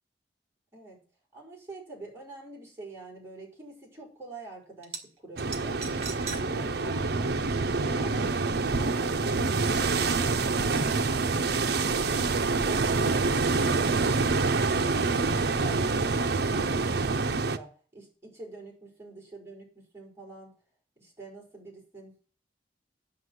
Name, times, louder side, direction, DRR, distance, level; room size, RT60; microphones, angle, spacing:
voice 1, 0.7-1.0 1.3-5.8 6.2-7.4 7.8-12.4 12.6-20.5 21.0-22.1, right 2 dB, 15° right, -3 dB, 5.0 m, -46 dB
sound 1, 4.8-5.0 5.4-6.4 6.8-6.9 8.5-8.6, right 5 dB, 35° right, 2.1 m, -38 dB
sound 2, 5.4-17.6, right 3 dB, 65° right, 0.7 m, -26 dB
9.5 x 6.0 x 8.1 m, 0.40 s
head